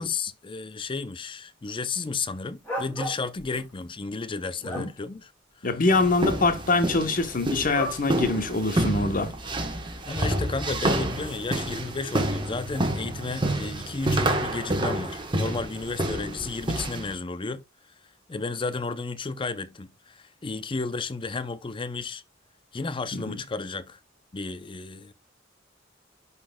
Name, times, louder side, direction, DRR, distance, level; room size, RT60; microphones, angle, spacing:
voice 1, 0.0-5.3 5.6-5.7 10.1-17.6 18.3-22.2 22.7-24.0 24.3-25.1, left 4 dB, 25° left, 0.5 m, -33 dB
sound 1, 2.6-3.6 4.3-4.9 7.7-8.0 8.9-9.0, equal, 10° left, 2.6 m, -34 dB
voice 2, 5.6-9.3 23.1-23.4, left 3 dB, 45° left, 1.0 m, -24 dB
sound 2, 5.9-17.1, right 1 dB, 25° right, 1.2 m, -28 dB
11.0 x 4.1 x 2.2 m
head